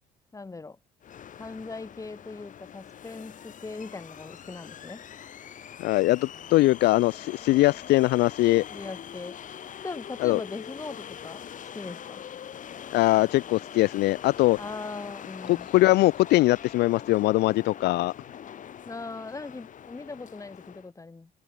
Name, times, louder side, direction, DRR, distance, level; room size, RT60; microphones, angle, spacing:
voice 1, 0.3-0.8 1.4-5.0 8.7-9.4 9.8-11.5 11.7-12.2 14.6-15.7 18.9-21.3, left 3 dB, 20° left, 5.6 m, -39 dB
sound 1, 1.0-20.9, left 9 dB, 50° left, 4.5 m, -43 dB
voice 2, 5.8-8.6 10.2-10.4 12.9-14.6 15.5-18.1, left 18 dB, 80° left, 0.8 m, -22 dB
cardioid pair, 110°, 17 cm